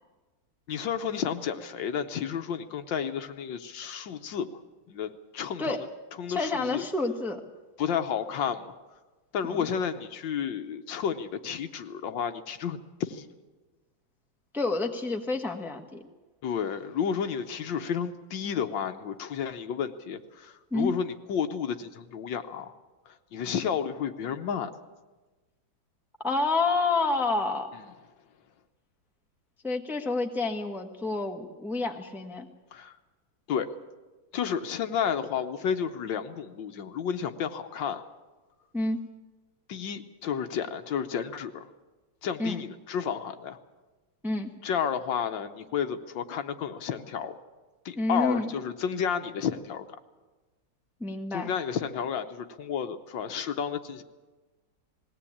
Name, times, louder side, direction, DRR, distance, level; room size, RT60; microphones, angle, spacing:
voice 1, 0.7-4.5 4.9-5.8 6.2-6.8 7.8-8.7 9.3-13.3 16.4-22.7 23.1-24.7 32.7-32.9 33.5-33.7 34.3-38.0 39.7-41.7 42.2-43.6 44.6-47.3 47.8-49.8 51.3-54.0, left 7 dB, 70° left, 8 dB, 1.5 m, -31 dB
voice 2, 6.3-7.4 9.4-9.6 14.5-16.0 20.7-20.9 26.2-27.7 29.6-32.5 38.7-39.0 42.4-42.6 44.2-44.5 48.0-48.6 51.0-51.5, left 3 dB, ahead, 3 dB, 1.1 m, -29 dB
20.0 x 17.5 x 8.6 m, 1.2 s
omnidirectional pair, 2.2 m